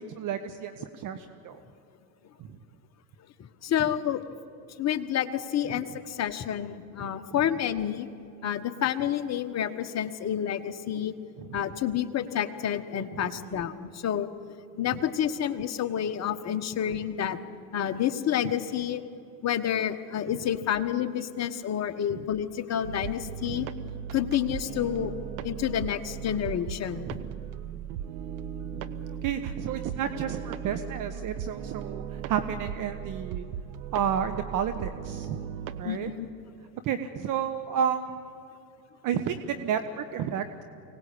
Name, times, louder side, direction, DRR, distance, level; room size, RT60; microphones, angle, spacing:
voice 1, 0.0-1.6 2.4-2.6 5.7-5.8 11.4-11.5 23.5-23.6 27.1-27.4 28.7-33.5 33.9-35.4 35.8-36.1 36.8-38.2 39.0-40.6, right 8 dB, 40° right, 9 dB, 1.2 m, -31 dB
voice 2, 3.6-4.2 4.8-8.1 8.4-11.1 11.5-14.3 14.8-17.4 17.7-19.0 19.4-23.7 24.1-25.1 25.4-27.1 35.8-36.3, left 10 dB, 30° left, 9 dB, 1.3 m, -29 dB
sound 1, 22.8-35.8, right 9 dB, 60° right, 1.1 m, -37 dB
24.0 x 18.5 x 8.5 m, 2.6 s
hypercardioid pair, 85°, 49 cm